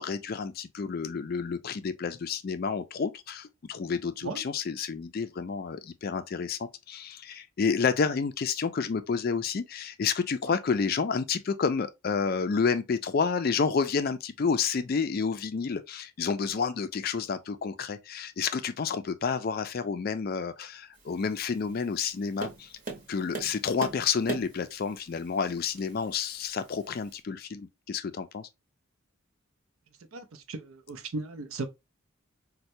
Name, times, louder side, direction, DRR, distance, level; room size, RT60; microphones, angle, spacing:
voice 1, 0.0-22.7 23.1-28.5, left 5 dB, 45° left, 0.3 m, -30 dB
Tap, 20.9-27.2, right 3 dB, 40° right, 0.9 m, -42 dB
voice 2, 30.1-30.6 30.9-31.7, right 3 dB, 80° right, 0.6 m, -35 dB
4.3 x 2.2 x 2.6 m
head